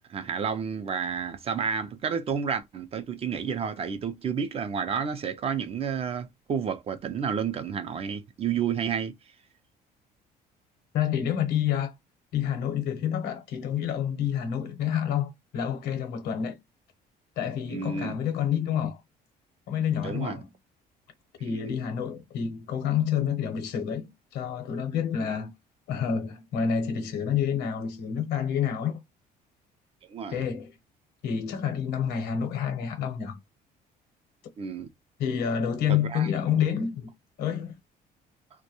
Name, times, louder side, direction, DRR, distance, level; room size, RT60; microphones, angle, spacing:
voice 1, 0.0-9.1 17.7-18.2 20.0-20.4 21.4-21.7 30.1-30.4 34.6-34.9 35.9-36.3, right 7 dB, 35° right, 0.4 m, -31 dB
voice 2, 10.9-11.9 12.3-16.6 17.4-19.0 19.7-20.5 21.4-25.5 25.9-29.0 30.3-30.7 31.2-33.4 35.2-37.1 37.4-37.8, left 8 dB, 85° left, 0.8 m, -28 dB
2.2 x 2.1 x 2.9 m
cardioid pair, 110°, 17 cm